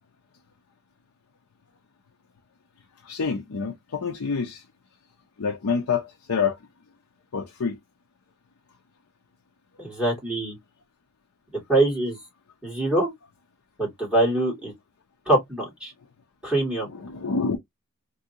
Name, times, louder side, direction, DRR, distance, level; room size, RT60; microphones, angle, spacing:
voice 1, 3.0-4.6 5.4-6.6 7.3-7.8 16.9-17.6, left 5 dB, 85° left, 0.6 m, -27 dB
voice 2, 9.8-10.6 11.7-12.2 12.6-13.1 13.8-14.7 15.3-15.9 16.4-16.9, right 1 dB, 5° right, 2.3 m, -23 dB
3.4 x 2.7 x 2.7 m
head